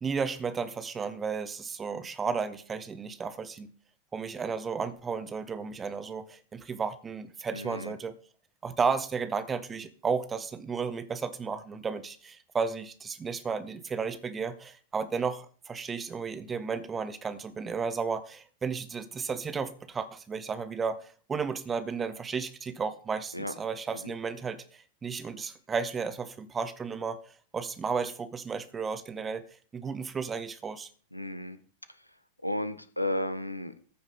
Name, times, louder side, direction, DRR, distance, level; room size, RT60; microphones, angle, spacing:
voice 1, 0.0-3.7 4.1-8.1 8.6-29.5 29.7-30.9, right 5 dB, 20° right, 1.3 m, -33 dB
voice 2, 7.5-7.9 23.3-23.5 24.0-24.1 31.1-31.6 32.0-32.1 32.4-33.7, left 1 dB, 90° left, 1.0 m, -33 dB
14.5 x 5.9 x 5.8 m
figure-of-eight pair, 90°, 0 cm